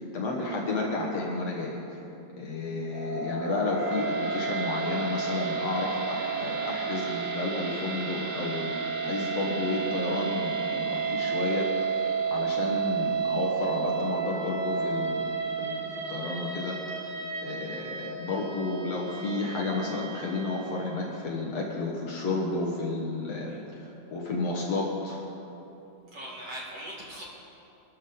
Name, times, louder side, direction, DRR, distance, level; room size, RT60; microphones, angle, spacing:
voice 1, 0.0-1.8 2.4-11.7 12.3-15.8 16.1-17.1 17.4-25.2, left 3 dB, 85° left, -2 dB, 1.4 m, -32 dB
sound 1, 2.9-21.1, right 5 dB, 35° right, 5.3 m, -32 dB
voice 2, 26.1-27.3, right 1 dB, 55° right, -4 dB, 1.7 m, -40 dB
24.0 x 12.5 x 3.9 m, 3.0 s
omnidirectional pair, 5.3 m